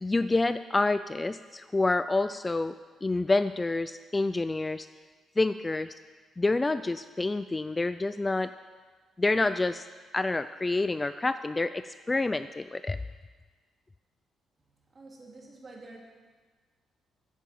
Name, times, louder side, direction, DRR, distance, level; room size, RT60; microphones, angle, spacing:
voice 1, 0.0-2.7 3.0-4.9 5.4-5.9 6.4-8.5 9.2-9.8 10.1-13.0, left 2 dB, 20° left, 12 dB, 0.3 m, -28 dB
voice 2, 14.9-16.0, right 2 dB, 35° right, -2 dB, 2.9 m, -48 dB
9.0 x 8.2 x 7.5 m, 1.4 s
cardioid pair, 90°, 0 cm